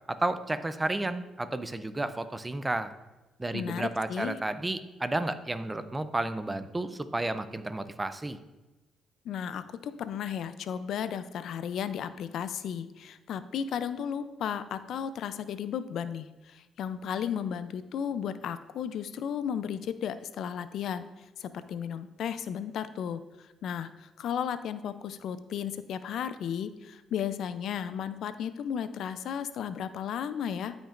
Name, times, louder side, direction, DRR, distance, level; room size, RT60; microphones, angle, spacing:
voice 1, 0.1-2.9 3.4-8.4, right 2 dB, 15° right, 12 dB, 0.5 m, -32 dB
voice 2, 3.5-4.4 9.2-21.1 21.4-30.8, left 8 dB, 75° left, 12 dB, 0.4 m, -34 dB
12.0 x 5.2 x 2.5 m, 1.1 s
cardioid pair, 90°, 0 cm